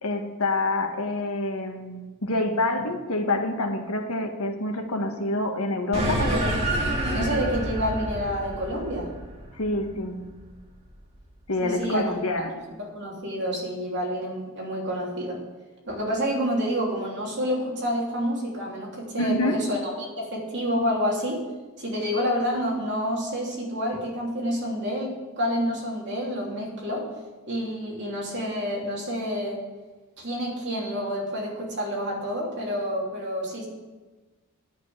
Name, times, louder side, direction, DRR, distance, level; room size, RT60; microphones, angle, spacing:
voice 1, 0.0-6.2 9.5-10.3 11.5-12.5 19.2-19.6, left 2 dB, 75° left, 5 dB, 1.4 m, -27 dB
sound 1, 5.9-10.7, right 1 dB, 30° right, 2.0 m, -28 dB
voice 2, 6.2-6.5 7.1-9.1 11.6-12.1 12.9-15.4 15.9-21.4 21.8-27.0 27.5-29.6 30.2-33.7, equal, 55° right, -3 dB, 3.1 m, -28 dB
10.0 x 6.1 x 8.6 m, 1.2 s
head